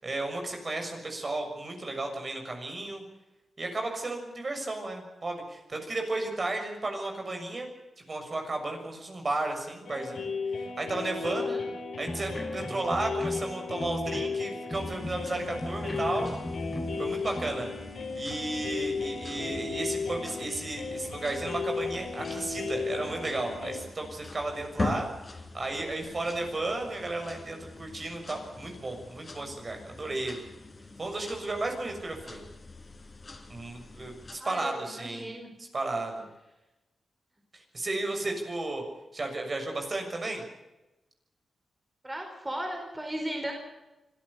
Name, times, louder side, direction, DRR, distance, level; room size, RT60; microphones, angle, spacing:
voice 1, 0.0-3.0 3.6-7.7 8.1-10.3 10.6-11.6 12.0-16.3 17.0-17.7 18.1-25.1 25.3-30.4 31.0-32.4 33.5-35.3 35.7-36.3 37.5-38.8 39.1-40.4, right 2 dB, 40° right, 3 dB, 6.7 m, -33 dB
sound 1, 9.9-23.8, left 4 dB, 80° left, 4.9 m, -35 dB
voice 2, 11.2-11.6 34.4-35.5 42.0-43.5, right 1 dB, 20° right, 2 dB, 4.9 m, -36 dB
sound 2, 12.0-14.4 14.7-17.5, left 1 dB, 15° left, 1.2 m, -38 dB
sound 3, 14.7-34.4, left 3 dB, 35° left, 4.0 m, -43 dB
25.5 x 14.0 x 8.3 m, 0.99 s
cardioid pair, 70°, 0 cm